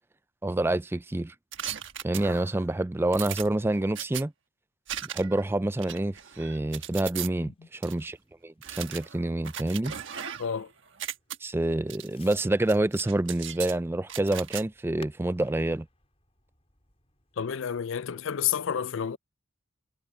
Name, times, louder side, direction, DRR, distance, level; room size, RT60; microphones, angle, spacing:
voice 1, 0.4-1.3 2.0-4.3 5.1-8.2 8.4-9.9 11.4-15.9, right 1 dB, 10° right, 0.3 m, -27 dB
sound 1, 1.5-2.6 3.1-4.2 4.9-5.4 5.8-7.3 7.8-7.9 8.6-10.6 10.9-11.4 11.9-12.4 12.7-13.7 14.1-14.6, right 10 dB, 60° right, 1.4 m, -38 dB
Fireworks, 6.2-17.6, left 4 dB, 30° left, 5.4 m, -61 dB
voice 2, 10.4-10.7 17.4-19.2, left 8 dB, 60° left, 0.4 m, -30 dB
head